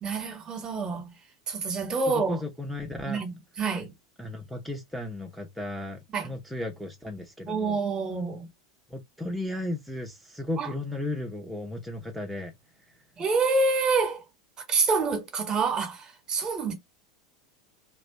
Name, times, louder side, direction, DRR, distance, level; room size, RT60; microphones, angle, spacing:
voice 1, 0.0-1.1 1.5-2.4 3.1-3.9 6.1-6.3 7.5-8.5 10.6-10.7 13.2-14.2 14.7-16.7, right 4 dB, 30° right, 1.6 m, -27 dB
voice 2, 2.1-3.2 4.2-7.8 8.9-12.5, left 1 dB, ahead, 0.9 m, -35 dB
3.2 x 3.1 x 4.0 m
hypercardioid pair, 90°, 2 cm